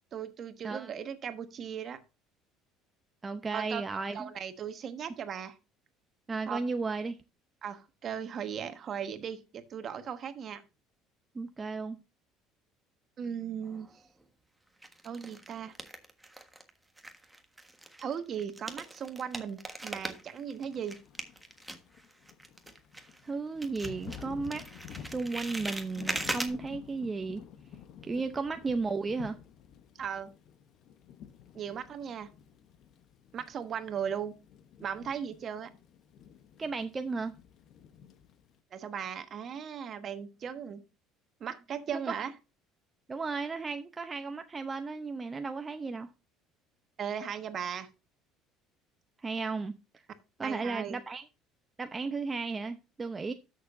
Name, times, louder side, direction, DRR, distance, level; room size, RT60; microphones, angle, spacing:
voice 1, 0.1-2.0 3.5-5.6 6.5-6.6 7.6-10.6 13.2-13.9 15.0-15.7 18.0-21.0 30.0-30.3 31.5-32.3 33.3-34.4 34.8-35.7 38.7-40.8 41.4-42.3 47.0-47.9 50.4-51.0, right 8 dB, 45° right, 1.3 m, -37 dB
voice 2, 3.2-4.3 6.3-7.2 11.3-12.0 23.2-24.6 25.0-27.4 28.0-29.4 36.6-37.3 42.1-42.2 43.1-46.1 49.2-49.7 50.4-51.2 51.8-53.3, right 4 dB, 25° right, 0.7 m, -34 dB
sound 1, 13.6-14.2 14.8-16.7 17.0-23.3 23.6-26.5, right 1 dB, 5° right, 1.4 m, -40 dB
Thunder / Rain, 20.5-38.6, left 8 dB, 60° left, 0.9 m, -51 dB
12.5 x 6.7 x 2.6 m
supercardioid pair, 90°, 0 cm